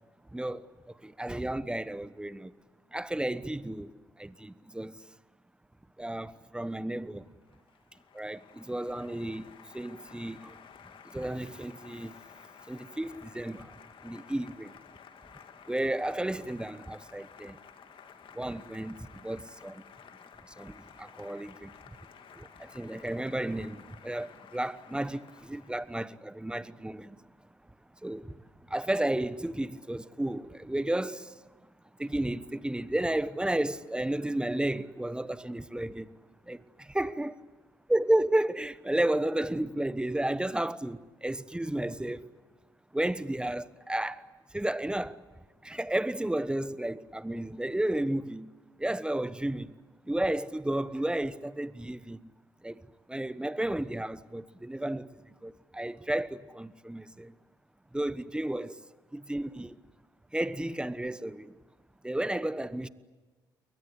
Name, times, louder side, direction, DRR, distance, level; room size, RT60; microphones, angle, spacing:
voice 1, 0.3-0.7 1.0-2.5 2.9-5.0 6.0-7.3 8.1-10.6 11.0-12.2 12.7-13.7 14.0-14.7 15.7-17.6 18.3-19.8 20.4-21.7 22.3-27.2 28.0-28.3 28.7-31.4 32.0-36.1 36.4-36.6 37.0-37.3 37.9-42.3 42.9-44.2 44.5-45.2 45.6-48.5 48.8-49.7 50.0-52.3 52.6-52.8 53.1-55.1 55.4-57.4 57.9-58.8 59.1-59.8 60.3-61.6 62.0-62.9, right 1 dB, 10° right, 1.1 m, -32 dB
Applause, 7.2-26.0, left 7 dB, 55° left, 2.4 m, -53 dB
29.5 x 22.5 x 8.3 m
hypercardioid pair, 50°, 10 cm